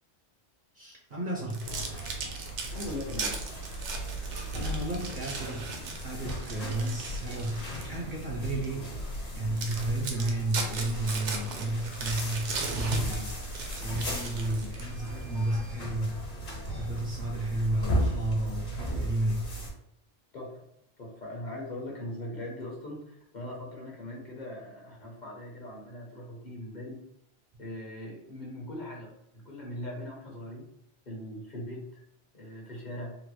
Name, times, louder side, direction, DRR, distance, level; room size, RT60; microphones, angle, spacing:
voice 1, 0.7-1.7 4.5-5.7 6.0-8.9 9.3-16.2 16.7-19.5, right 1 dB, 55° right, -1 dB, 0.6 m, -32 dB
sound 1, 1.5-8.0 8.5-8.7 9.2-9.3 9.6-15.1, right 4 dB, 75° right, 0.9 m, -38 dB
sound 2, 1.6-19.7, right 1 dB, 60° left, 1.4 m, -36 dB
voice 2, 2.7-3.4 20.3-20.6 21.0-27.0 27.6-30.7 31.1-32.0 32.3-33.1, left 1 dB, 45° left, -2 dB, 0.8 m, -40 dB
3.8 x 2.1 x 3.0 m, 0.76 s
omnidirectional pair, 1.2 m